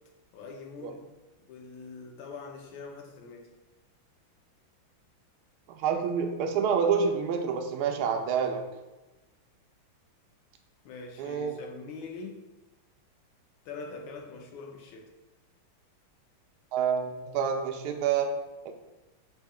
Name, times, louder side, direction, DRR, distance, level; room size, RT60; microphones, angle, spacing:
voice 1, 0.3-1.1 1.5-3.5 10.8-12.4 13.6-15.1, left 4 dB, 75° left, 3 dB, 1.5 m, -43 dB
voice 2, 5.7-8.6 11.2-11.6 16.7-18.3 18.6-18.7, right 6 dB, 75° right, 4 dB, 0.9 m, -28 dB
4.2 x 2.7 x 4.7 m, 1.1 s
omnidirectional pair, 2.3 m